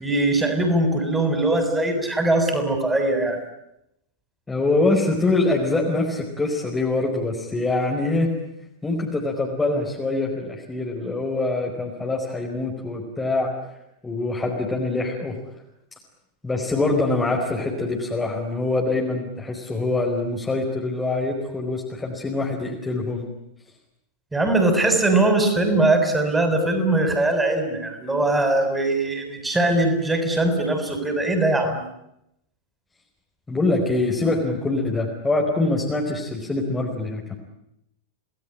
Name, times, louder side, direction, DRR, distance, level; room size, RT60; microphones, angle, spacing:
voice 1, 0.0-3.4 24.3-31.8, right 2 dB, 10° right, 6 dB, 7.0 m, -21 dB
voice 2, 4.5-8.3 8.8-13.5 14.0-15.4 16.4-23.3 33.5-37.3, left 2 dB, 10° left, -1 dB, 4.9 m, -24 dB
29.5 x 19.5 x 10.0 m, 0.81 s
figure-of-eight pair, 90°, 0 cm